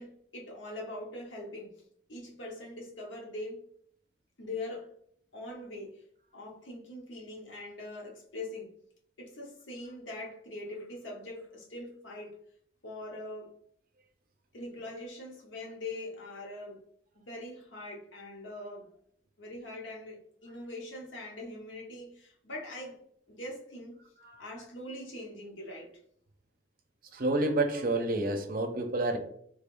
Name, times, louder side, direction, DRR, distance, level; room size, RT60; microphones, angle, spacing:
voice 1, 0.0-1.7 2.1-3.6 4.4-4.9 5.3-6.0 6.3-8.7 9.2-12.4 12.8-13.5 14.5-16.8 17.1-18.9 19.4-23.0 23.3-23.9 24.4-25.9, left 1 dB, 80° left, -1 dB, 1.0 m, -42 dB
voice 2, 27.1-29.2, right 2 dB, 50° right, 6 dB, 0.5 m, -29 dB
3.5 x 3.3 x 2.5 m, 0.66 s
head